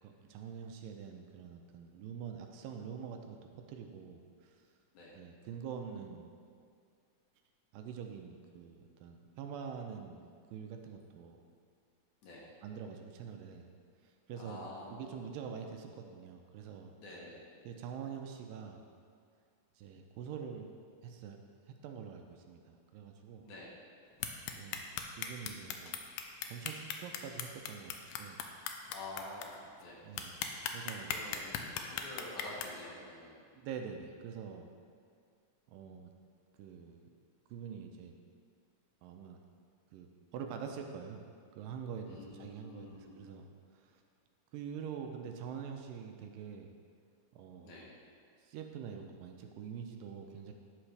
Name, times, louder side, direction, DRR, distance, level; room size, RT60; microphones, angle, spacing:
voice 1, 0.0-4.6 5.2-6.6 7.7-11.4 12.6-13.7 14.0-16.9 17.6-18.9 19.8-20.7 21.0-21.4 21.7-23.5 24.6-24.9 25.2-26.0 26.4-28.4 30.0-30.4 30.7-31.2 33.6-34.7 35.7-36.1 36.6-37.1 37.5-38.1 39.0-39.4 39.9-41.2 41.6-43.5 43.7-44.0 44.5-46.7 47.3-47.9 48.4-50.5, right 7 dB, 85° right, 4 dB, 2.2 m, -45 dB
voice 2, 14.3-15.1 17.0-17.4 23.4-23.7 28.9-30.0 31.1-33.4 42.1-43.2 47.6-47.9, left 2 dB, 65° left, -5 dB, 2.4 m, -48 dB
sound 1, 24.2-29.4 29.8-29.9 30.2-32.6, left 9 dB, 80° left, 2.0 m, -37 dB
9.9 x 6.0 x 3.3 m, 2.2 s
omnidirectional pair, 3.9 m